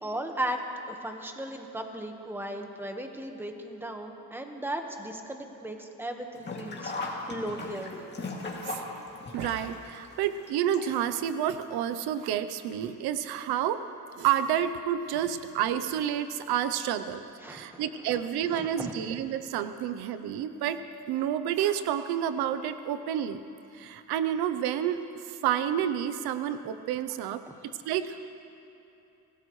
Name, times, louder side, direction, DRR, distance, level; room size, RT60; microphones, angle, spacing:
voice 1, 0.0-7.9 17.4-17.8 18.5-18.9, right 1 dB, 5° right, 4 dB, 1.3 m, -36 dB
Sink (filling or washing), 6.3-11.3 11.6-11.7 12.7-12.8 13.1-13.2, left 2 dB, 30° left, 2.4 m, -38 dB
voice 2, 9.3-13.8 14.2-17.2 17.5-20.8 21.1-23.4 23.7-27.4 27.8-28.3, right 10 dB, 90° right, 11 dB, 0.8 m, -29 dB
25.0 x 17.5 x 3.2 m, 2.8 s
cardioid pair, 120°, 37 cm